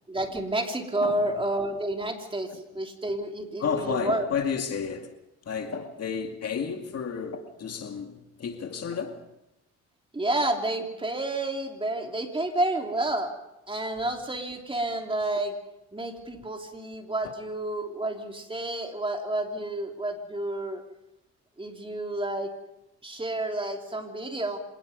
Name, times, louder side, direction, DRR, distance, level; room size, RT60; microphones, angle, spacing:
voice 1, 0.1-4.2 10.1-13.3 13.7-15.6 15.9-20.8 21.6-22.5 23.0-24.6, right 1 dB, 15° right, 3.2 m, -30 dB
voice 2, 1.0-1.3 2.5-2.6 3.6-5.1 5.5-9.3 17.2-17.3, left 6 dB, 55° left, 2.4 m, -32 dB
26.5 x 19.0 x 5.4 m
cardioid pair, 90°, 30 cm